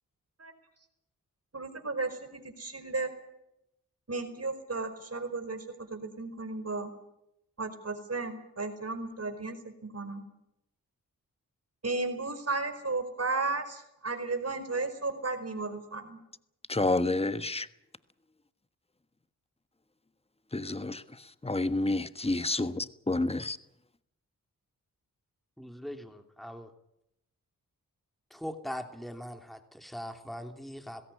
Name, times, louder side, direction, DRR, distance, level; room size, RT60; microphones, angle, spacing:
voice 1, 1.5-3.1 4.1-6.9 7.6-10.2 11.8-16.2, right 3 dB, 45° right, 4.9 m, -34 dB
voice 2, 16.7-17.6 20.5-21.0 21.5-23.6, left 2 dB, 15° left, 1.4 m, -29 dB
voice 3, 25.6-26.7 28.4-31.0, equal, ahead, 3.0 m, -41 dB
20.5 x 16.5 x 10.0 m
cardioid pair, 45°, 35 cm